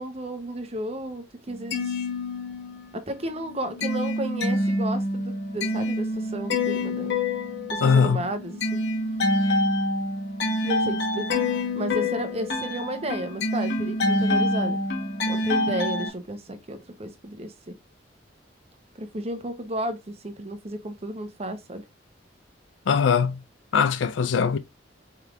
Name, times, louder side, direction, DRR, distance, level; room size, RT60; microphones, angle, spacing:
voice 1, 0.0-1.9 2.9-7.1 7.7-8.8 10.6-11.3 11.7-14.8 15.3-17.7 19.0-21.8, right 1 dB, 35° right, 0.7 m, -33 dB
sound 1, 1.5-2.9 3.3-16.1, left 1 dB, 65° left, 1.1 m, -27 dB
voice 2, 7.8-8.3 22.9-23.4 23.7-24.6, left 6 dB, 85° left, 0.4 m, -21 dB
4.6 x 3.4 x 2.4 m
head